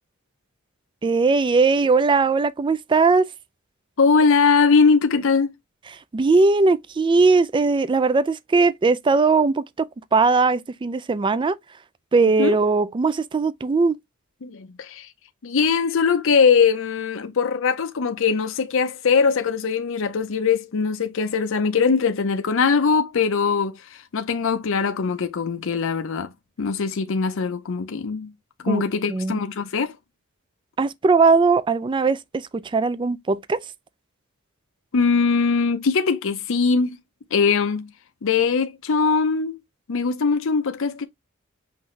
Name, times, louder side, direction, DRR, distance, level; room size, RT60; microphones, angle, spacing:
voice 1, 1.0-3.2 6.1-11.6 12.1-14.0 28.7-28.8 29.1-29.4 30.8-33.6, right 4 dB, 25° right, 0.3 m, -19 dB
voice 2, 4.0-5.5 12.2-12.6 14.4-15.1 15.4-26.3 26.6-28.3 28.6-29.9 34.9-37.0 37.3-37.9 38.2-39.6 39.9-41.1, left 5 dB, 65° left, 0.6 m, -21 dB
5.8 x 2.6 x 3.1 m
head